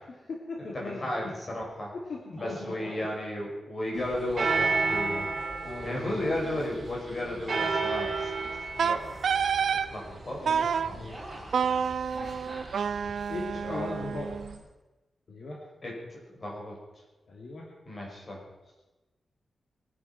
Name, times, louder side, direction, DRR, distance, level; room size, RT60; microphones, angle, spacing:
voice 1, 0.1-1.4 1.9-3.1 3.9-4.1 5.6-6.2 10.4-11.9 12.2-12.4 13.0-14.4 15.3-15.6 17.3-17.7 18.7-18.8, left 3 dB, 60° left, -2 dB, 2.8 m, -40 dB
voice 2, 0.7-1.9 2.4-5.3 5.8-8.3 8.7-9.2 9.9-10.4 10.8-11.0 13.6-13.9 15.8-16.8 17.9-18.4, left 1 dB, 30° left, -2 dB, 5.7 m, -34 dB
sound 1, 2.4-3.1 3.8-4.5 5.3-8.5 8.9-9.6 10.7-13.4, right 1 dB, 10° right, 3.7 m, -47 dB
sound 2, 3.9-14.5, right 4 dB, 45° right, 3.0 m, -33 dB
Wind instrument woodwind instrument, 8.8-9.9 10.5-10.9 11.5-14.5, right 7 dB, 75° right, 0.7 m, -28 dB
22.0 x 10.5 x 6.0 m, 1.1 s
wide cardioid pair, 170°, 0 cm